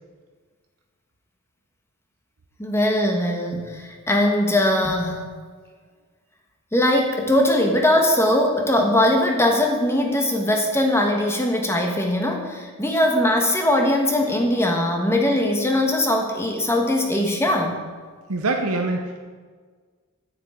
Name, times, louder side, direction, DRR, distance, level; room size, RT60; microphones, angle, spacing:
voice 1, 2.6-5.3 6.7-17.8, left 1 dB, 10° left, 2 dB, 1.4 m, -20 dB
voice 2, 18.3-19.3, right 2 dB, 85° right, 3 dB, 0.9 m, -24 dB
9.4 x 6.2 x 8.6 m, 1.5 s
head